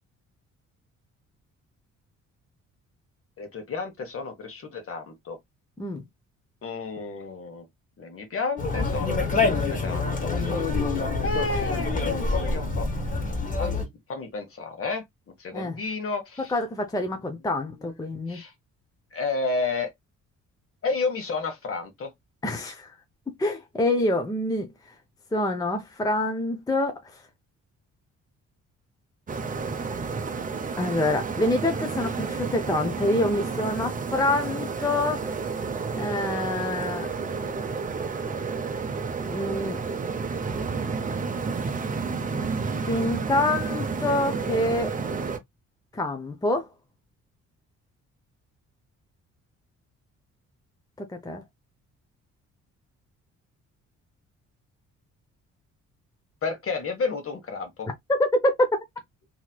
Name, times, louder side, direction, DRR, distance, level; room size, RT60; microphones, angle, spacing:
voice 1, 3.4-5.4 6.6-7.6 8.0-10.6 11.2-12.9 13.6-13.8 14.1-15.0 15.4-16.5 17.8-17.9 18.3-18.5 19.1-19.9 20.8-22.1 56.4-57.9, left 4 dB, 45° left, 1.2 m, -31 dB
Conversation, 8.6-13.9, left 3 dB, 25° left, 1.5 m, -26 dB
voice 2, 16.5-18.4 22.4-22.9 23.4-24.7 25.3-27.0 30.8-35.2 36.0-37.1 39.3-39.8 42.9-44.9 45.9-46.7 51.0-51.4 58.4-58.5, left 1 dB, 10° left, 0.6 m, -26 dB
sound 1, 29.3-45.4, right 4 dB, 25° right, 0.6 m, -31 dB
3.0 x 3.0 x 2.2 m
cardioid pair, 90°, 30 cm